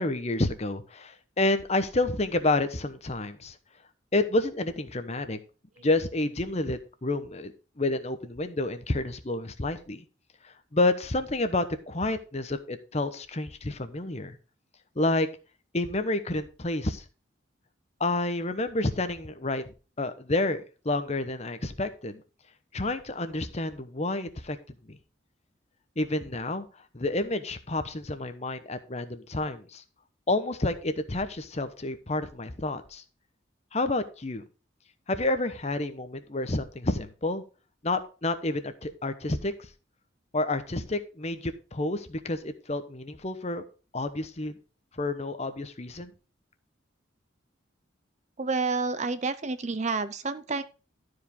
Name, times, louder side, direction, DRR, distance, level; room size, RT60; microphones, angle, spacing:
voice 1, 0.0-3.6 4.1-5.4 5.8-10.0 10.4-14.4 15.0-15.3 15.7-17.0 18.0-22.2 22.7-24.6 24.9-25.0 26.0-26.7 26.9-29.8 30.3-33.0 33.7-34.4 35.1-37.4 37.8-39.7 40.3-43.6 43.9-44.6 44.9-46.1, left 2 dB, 35° left, 10 dB, 0.9 m, -29 dB
voice 2, 48.4-50.6, right 4 dB, 35° right, 13 dB, 0.6 m, -29 dB
12.5 x 4.9 x 5.2 m, 0.34 s
head